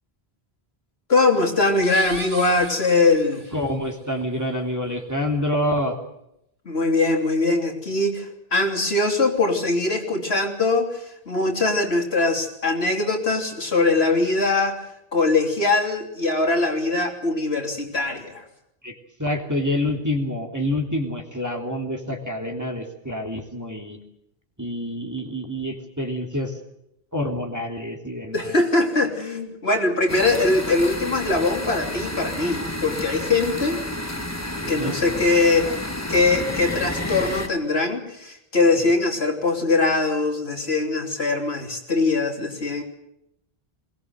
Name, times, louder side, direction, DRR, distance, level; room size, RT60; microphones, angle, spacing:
voice 1, 1.1-3.4 6.7-14.8 15.1-18.5 28.3-33.8 34.7-42.8, left 3 dB, 80° left, 2 dB, 3.5 m, -22 dB
sound 1, 1.8-3.8, right 2 dB, 60° right, 2.5 m, -37 dB
voice 2, 3.5-6.0 18.8-24.0 24.6-26.6 27.1-28.6 34.6-35.8, left 1 dB, 15° right, 2 dB, 3.1 m, -27 dB
sound 2, 30.1-37.5, left 1 dB, 15° left, 1.6 m, -30 dB
21.5 x 19.5 x 7.9 m, 0.80 s
omnidirectional pair, 1.1 m